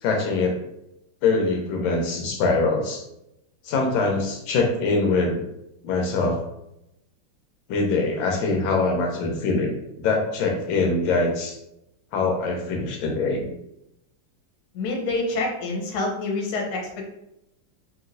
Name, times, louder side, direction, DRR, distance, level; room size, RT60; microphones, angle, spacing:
voice 1, 0.0-0.6 1.2-3.0 3.6-5.4 5.8-6.4 7.7-11.6 12.1-13.5, left 3 dB, 90° left, 2 dB, 1.4 m, -23 dB
voice 2, 14.7-17.1, left 2 dB, 65° left, 0 dB, 1.2 m, -27 dB
2.9 x 2.9 x 2.5 m, 0.85 s
omnidirectional pair, 2.1 m